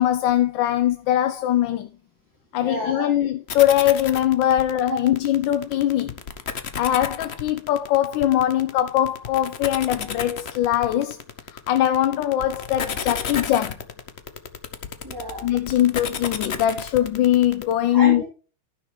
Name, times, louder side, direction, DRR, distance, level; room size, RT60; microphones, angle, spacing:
voice 1, 0.0-1.9 2.5-6.1 6.8-11.2 11.5-13.8 15.4-18.2, left 12 dB, 70° left, 1.3 m, -21 dB
voice 2, 2.6-3.1 4.9-5.1 15.0-15.5 17.9-18.2, equal, 10° right, 2.7 m, -29 dB
sound 1, 3.5-17.7, left 7 dB, 45° left, 0.8 m, -32 dB
14.5 x 6.3 x 3.2 m
omnidirectional pair, 2.3 m